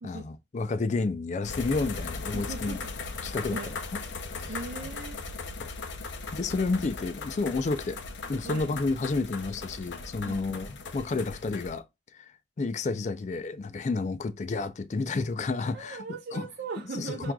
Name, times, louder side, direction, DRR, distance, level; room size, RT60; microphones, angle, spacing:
voice 1, 0.0-2.8 3.2-3.6 3.9-4.0 4.4-4.5 5.6-5.7 6.3-8.0 8.3-11.9 12.1-12.3 12.6-16.0 16.3-16.5 16.9-17.3, left 3 dB, 40° left, 0.4 m, -30 dB
sound 1, 1.4-11.8, left 4 dB, 90° left, 0.6 m, -38 dB
voice 2, 2.3-2.8 3.5-3.8 4.5-5.2 8.4-8.7 10.2-10.6 15.7-17.3, right 4 dB, 65° right, 0.5 m, -39 dB
5.9 x 2.5 x 2.2 m
head